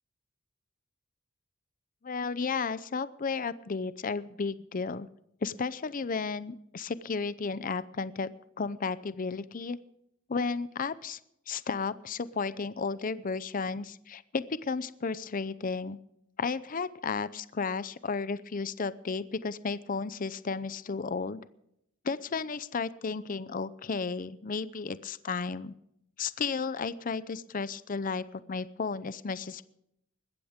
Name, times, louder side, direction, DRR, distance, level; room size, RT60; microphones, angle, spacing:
voice 1, 2.0-5.1 5.4-8.3 8.6-9.8 10.3-11.2 11.5-16.0 16.4-21.4 22.0-25.7 26.2-29.6, left 4 dB, 45° left, 16 dB, 0.6 m, -33 dB
20.5 x 15.0 x 3.6 m, 0.77 s
head